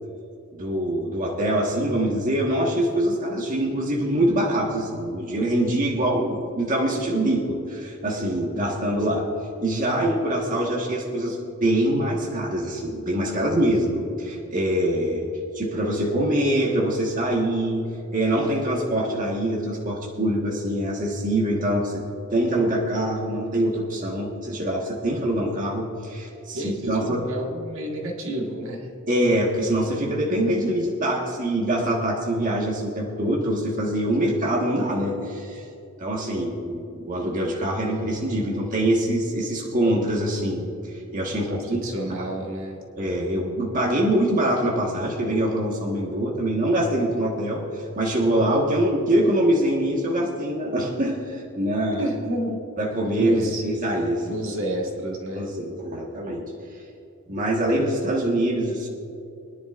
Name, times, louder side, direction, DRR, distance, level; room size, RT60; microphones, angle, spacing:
voice 1, 0.5-9.3 9.6-15.3 15.5-22.0 22.3-27.2 29.1-35.6 36.0-42.1 43.0-52.1 52.8-54.3 55.3-56.8 57.3-58.9, right 1 dB, 40° right, -2 dB, 1.6 m, -24 dB
voice 2, 13.2-13.7 26.5-29.0 41.3-42.8 52.0-52.6 53.2-53.6 54.3-55.5 57.3-57.4, right 1 dB, 65° right, 0 dB, 1.8 m, -30 dB
24.0 x 10.5 x 2.6 m, 2.6 s
head